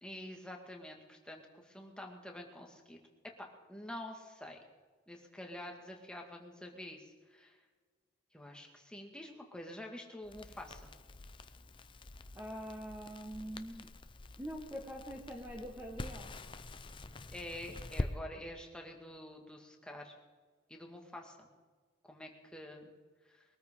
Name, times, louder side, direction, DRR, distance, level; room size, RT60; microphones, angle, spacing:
voice 1, 0.0-3.0 3.4-4.6 5.1-7.6 8.3-10.9 17.3-20.1 20.7-21.5 22.0-22.9 23.3-23.4, left 1 dB, 5° left, 1 dB, 1.9 m, -47 dB
Crackle, 10.2-18.1, left 2 dB, 25° left, 0.6 m, -45 dB
voice 2, 12.3-13.9 14.4-16.3, equal, 10° right, 0 dB, 1.3 m, -44 dB
22.5 x 13.5 x 3.7 m, 1.4 s
head